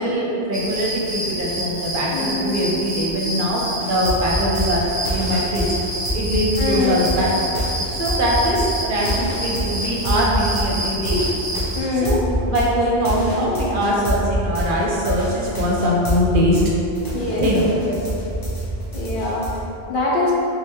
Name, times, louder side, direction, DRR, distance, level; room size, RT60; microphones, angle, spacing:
voice 1, 0.0-5.6 6.1-7.5 7.9-11.3 11.9-16.6 17.4-17.7, equal, 60° right, -4 dB, 0.7 m, -22 dB
sound 1, 0.5-11.8, right 1 dB, 85° left, 1.5 m, -28 dB
voice 2, 2.1-2.5 6.6-6.9 11.7-12.2 17.1-18.0 18.9-19.5 19.9-20.3, left 2 dB, 60° left, -4 dB, 0.8 m, -23 dB
sound 2, 3.8-16.7 16.9-19.6, equal, 25° left, 0.7 m, -26 dB
3.7 x 3.4 x 3.0 m, 2.9 s
omnidirectional pair, 1.1 m